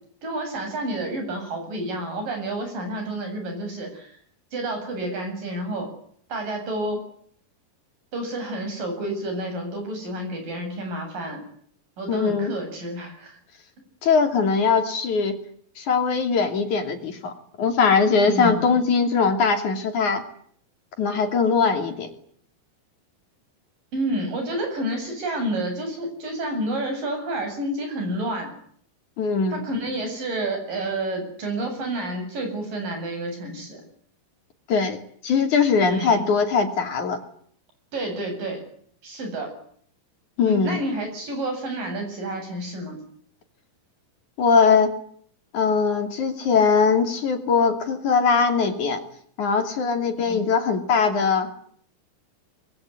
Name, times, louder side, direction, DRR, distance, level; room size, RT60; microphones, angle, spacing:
voice 1, 0.2-4.1 4.5-5.9 6.3-7.0 8.1-11.4 12.0-13.4 18.3-18.8 23.9-28.5 29.5-33.8 35.8-36.3 37.9-38.6 39.0-39.5 40.4-43.0 50.2-50.5, right 1 dB, 65° right, 5 dB, 9.7 m, -29 dB
voice 2, 12.1-12.5 14.0-15.4 15.8-20.2 21.0-22.1 29.2-29.6 34.7-35.0 35.2-37.2 40.4-40.8 44.4-44.9 45.5-49.0 49.4-51.5, left 5 dB, 55° left, 6 dB, 4.1 m, -21 dB
25.5 x 22.0 x 9.7 m, 0.63 s
omnidirectional pair, 4.2 m